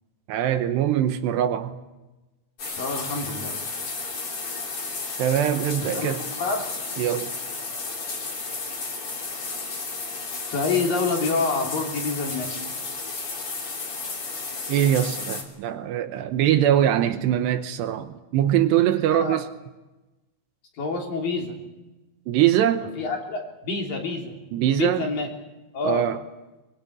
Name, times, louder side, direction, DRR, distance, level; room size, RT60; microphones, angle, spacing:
voice 1, 0.3-1.8 5.2-6.2 7.0-7.3 14.7-19.5 22.3-22.9 24.5-25.1 25.8-26.2, right 11 dB, 75° right, 3.0 m, -22 dB
sound 1, 2.6-15.4, left 4 dB, 35° left, 3.4 m, -33 dB
voice 2, 2.8-3.6 5.8-6.1 6.4-6.7 10.5-12.5 19.1-19.4 20.8-21.5 23.0-24.4 24.8-25.3 25.7-26.0, left 3 dB, 50° left, 4.6 m, -27 dB
23.0 x 21.5 x 8.6 m
omnidirectional pair, 5.2 m